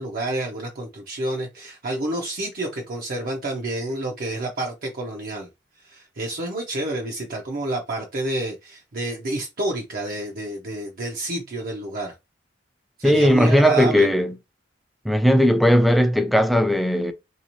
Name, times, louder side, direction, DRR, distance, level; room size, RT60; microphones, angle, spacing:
voice 1, 0.0-5.5 5.8-12.1 13.0-14.1, right 1 dB, 50° right, 0.6 m, -29 dB
voice 2, 13.0-14.3 15.0-17.1, equal, ahead, 0.3 m, -17 dB
3.4 x 2.7 x 2.9 m
head